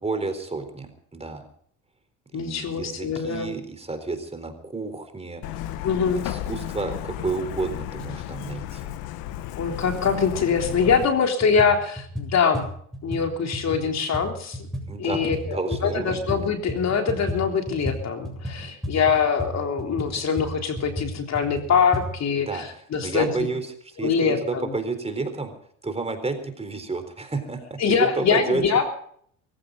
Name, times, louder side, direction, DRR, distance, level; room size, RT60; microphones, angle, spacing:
voice 1, 0.0-1.5 2.3-5.4 6.2-8.9 14.9-16.2 22.4-22.7 23.0-23.7 24.0-25.5 25.8-28.6, right 3 dB, 15° right, 8 dB, 4.0 m, -30 dB
voice 2, 2.3-3.6 5.8-6.2 9.5-12.7 13.0-14.6 15.0-23.5 24.0-24.7 27.8-28.9, left 6 dB, 45° left, 4 dB, 3.6 m, -23 dB
Truck, 5.4-11.0, left 13 dB, 70° left, 1.4 m, -33 dB
sound 1, 10.9-11.1 11.4-16.4 16.7-22.1, equal, ahead, 7.7 m, -33 dB
23.0 x 15.5 x 3.9 m, 0.62 s
supercardioid pair, 90°, 37 cm